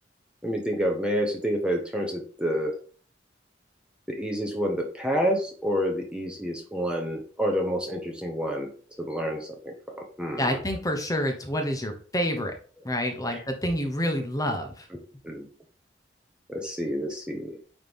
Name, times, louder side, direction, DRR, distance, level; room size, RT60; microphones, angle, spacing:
voice 1, 0.4-2.7 4.1-8.7 9.0-10.4 13.3-13.4 15.2-15.5 16.5-17.6, equal, 5° right, 1 dB, 0.9 m, -28 dB
voice 2, 10.4-12.5 12.8-14.9, equal, 20° left, 4 dB, 1.0 m, -28 dB
9.3 x 3.2 x 3.6 m, 0.41 s
head